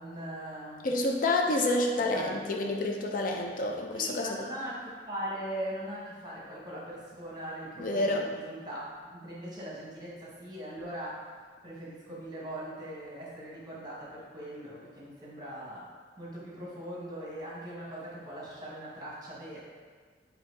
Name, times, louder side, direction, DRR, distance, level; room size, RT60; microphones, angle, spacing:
voice 1, 0.0-0.9 2.1-2.3 3.9-11.2 11.6-15.9 16.2-19.6, right 1 dB, 25° right, -6 dB, 1.2 m, -40 dB
voice 2, 0.8-4.5 7.8-8.3, left 2 dB, 50° left, 1 dB, 0.5 m, -28 dB
4.2 x 2.8 x 3.9 m, 1.5 s
head